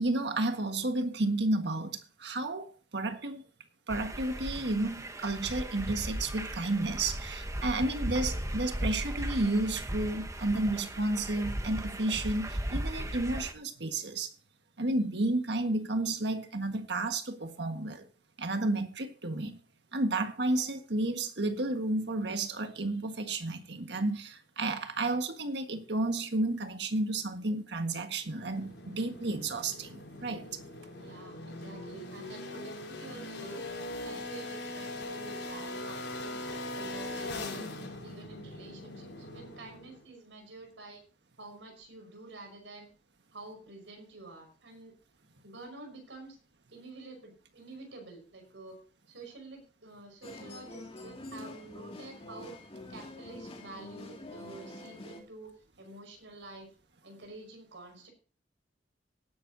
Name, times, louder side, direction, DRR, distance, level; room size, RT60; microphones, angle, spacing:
voice 1, 0.0-3.4 3.9-14.3 14.8-18.1 18.4-19.6 19.9-30.6, right 2 dB, 65° right, 1.6 m, -32 dB
sound 1, 3.9-13.5, right 1 dB, 15° right, 1.0 m, -37 dB
sound 2, 28.2-40.0, left 2 dB, 85° left, 5.1 m, -41 dB
voice 2, 31.0-33.7 34.0-36.4 36.7-37.7 38.0-41.0 41.4-42.9 43.3-44.9 45.4-46.4 46.7-48.8 49.1-52.5 52.9-55.5 55.8-56.7 57.0-58.1, right 2 dB, 90° right, 5.6 m, -48 dB
sound 3, 50.2-55.2, left 1 dB, 30° left, 2.4 m, -46 dB
18.0 x 11.0 x 2.8 m
head